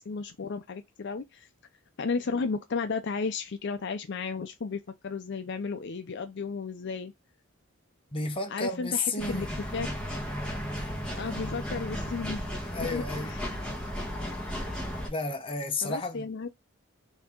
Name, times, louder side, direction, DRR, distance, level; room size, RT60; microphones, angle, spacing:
voice 1, 0.0-1.5 2.0-7.1 8.5-9.5 9.7-9.9 11.1-13.6 15.8-16.5, left 4 dB, 55° left, 0.5 m, -34 dB
voice 2, 8.1-9.5 12.7-13.4 15.0-16.3, left 3 dB, 25° left, 0.8 m, -32 dB
sound 1, 9.2-15.1, equal, 5° left, 1.3 m, -34 dB
4.5 x 2.8 x 3.6 m
head